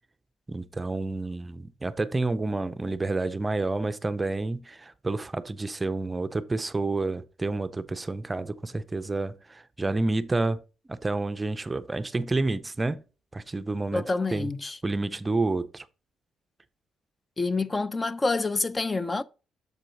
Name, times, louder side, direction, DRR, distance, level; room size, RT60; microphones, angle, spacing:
voice 1, 0.5-10.6 10.9-13.0 13.3-14.1 14.3-14.5 14.8-15.9, right 2 dB, 20° right, 0.5 m, -29 dB
voice 2, 13.9-14.8 17.4-19.2, left 3 dB, 25° left, 0.5 m, -27 dB
7.0 x 4.4 x 3.9 m
cardioid pair, 90°, 0 cm